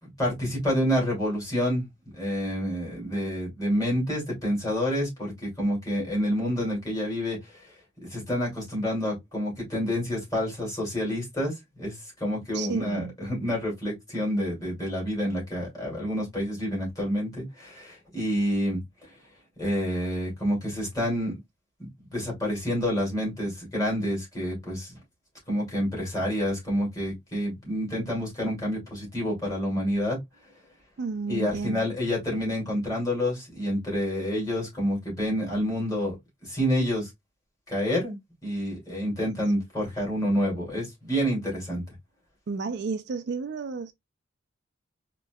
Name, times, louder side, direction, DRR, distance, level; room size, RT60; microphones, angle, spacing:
voice 1, 0.0-1.9 2.1-7.4 8.1-11.9 12.2-18.8 19.6-21.4 21.8-25.0 25.5-30.2 31.3-36.2 36.4-37.1 37.7-38.2 38.4-41.8, equal, 20° left, 2.4 m, -28 dB
voice 2, 12.5-13.1 31.0-31.9 42.5-43.9, right 4 dB, 60° right, 0.4 m, -32 dB
4.2 x 2.9 x 2.2 m
head